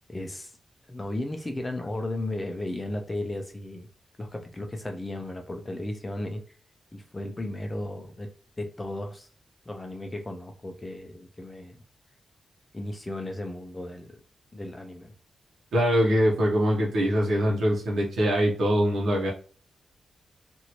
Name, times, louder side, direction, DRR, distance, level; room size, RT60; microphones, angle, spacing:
voice 1, 0.1-0.5 0.9-3.9 4.2-6.4 6.9-8.3 8.6-9.3 9.7-11.8 12.7-14.2 14.5-15.1, left 1 dB, 15° left, 4 dB, 0.5 m, -35 dB
voice 2, 15.7-19.3, equal, 80° right, -3 dB, 0.9 m, -23 dB
3.0 x 2.6 x 2.9 m, 0.40 s
wide cardioid pair, 140°, 0 cm